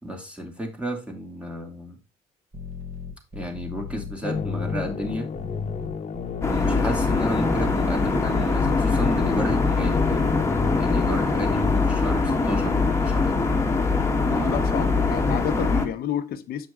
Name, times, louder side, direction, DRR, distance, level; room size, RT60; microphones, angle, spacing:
voice 1, 0.0-1.9 3.3-5.3 6.4-10.3 10.8-13.4 14.3-14.7, equal, 5° right, 2.3 m, -32 dB
sound 1, 2.5-9.5, left 5 dB, 40° right, 4.2 m, -37 dB
sound 2, 4.2-11.7, left 5 dB, 40° left, 1.2 m, -31 dB
sound 3, 6.4-15.9, left 3 dB, 15° left, 1.5 m, -23 dB
voice 2, 14.4-16.7, left 10 dB, 65° left, 0.8 m, -29 dB
7.7 x 5.8 x 3.6 m
cardioid pair, 110°, 17 cm